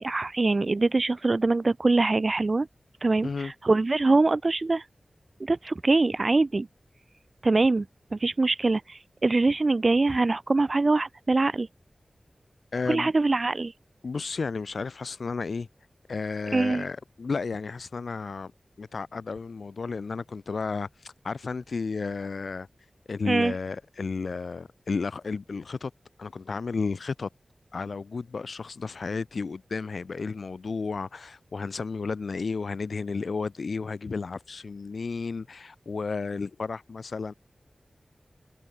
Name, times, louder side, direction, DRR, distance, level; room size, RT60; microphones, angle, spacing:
voice 1, 0.0-2.7 3.0-4.9 5.4-6.7 7.4-7.9 8.1-11.7 12.9-13.7 16.5-16.8 23.3-23.5, right 3 dB, 50° right, 0.5 m, -23 dB
voice 2, 3.2-3.5 12.7-13.1 14.0-15.7 16.1-18.5 18.8-22.7 23.1-25.9 26.2-27.3 27.7-37.3, left 4 dB, 80° left, 3.6 m, -32 dB
wide cardioid pair, 75°, 0 cm